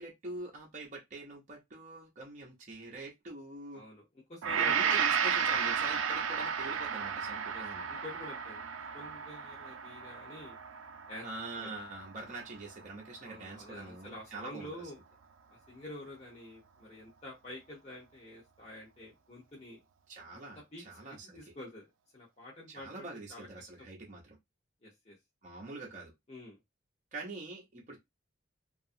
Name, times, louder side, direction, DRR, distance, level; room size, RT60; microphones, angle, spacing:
voice 1, 0.0-3.8 4.6-7.9 11.2-14.7 20.1-21.4 22.7-24.4 25.4-26.1 27.1-28.0, right 2 dB, 35° right, 0.6 m, -44 dB
voice 2, 3.7-4.9 7.5-8.6 8.9-10.6 11.1-11.3 11.6-11.7 13.2-15.0 15.7-19.8 20.3-21.9 22.1-23.5 23.8-23.9 24.8-25.2 26.3-26.6, left 1 dB, 30° left, 0.8 m, -48 dB
Gong, 4.4-12.7 13.2-13.4, right 7 dB, 80° right, 0.4 m, -33 dB
2.9 x 2.4 x 2.6 m
head